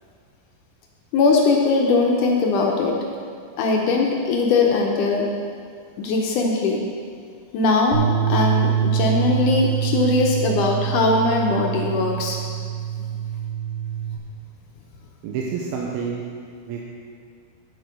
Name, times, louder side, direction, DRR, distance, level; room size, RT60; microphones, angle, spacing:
voice 1, 1.1-2.9 3.6-5.3 6.0-6.8 7.5-12.4, left 3 dB, 75° left, 0 dB, 2.0 m, -20 dB
sound 1, 7.9-14.2, right 9 dB, 65° right, 3.2 m, -24 dB
voice 2, 15.2-16.2 16.7-16.8, right 6 dB, 85° right, -2 dB, 2.6 m, -28 dB
9.2 x 7.9 x 5.3 m, 2.1 s
omnidirectional pair, 4.4 m